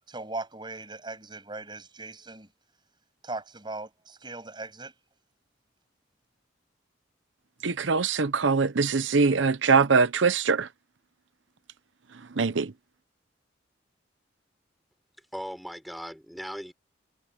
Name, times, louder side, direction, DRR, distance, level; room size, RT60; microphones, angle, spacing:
voice 1, 0.1-2.5 3.2-4.9, right 2 dB, 25° right, 7.5 m, -39 dB
voice 2, 7.6-10.7 12.4-12.7, right 4 dB, 80° right, 0.8 m, -23 dB
voice 3, 15.3-16.7, equal, ahead, 5.5 m, -38 dB
head